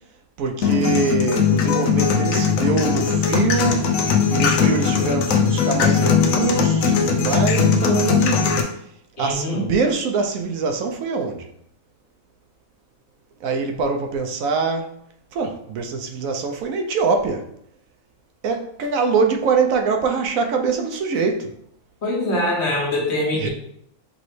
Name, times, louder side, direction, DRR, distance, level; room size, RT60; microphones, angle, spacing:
voice 1, 0.4-3.9 4.3-8.5 9.2-11.5 13.4-14.9 15.3-17.5 18.4-21.5 23.3-23.5, right 5 dB, 85° right, 1.1 m, -23 dB
sound 1, 0.6-8.6, left 6 dB, 85° left, 1.1 m, -19 dB
voice 2, 9.2-9.7 22.0-23.5, left 1 dB, 55° left, 1.4 m, -23 dB
5.1 x 3.1 x 3.2 m
omnidirectional pair, 1.4 m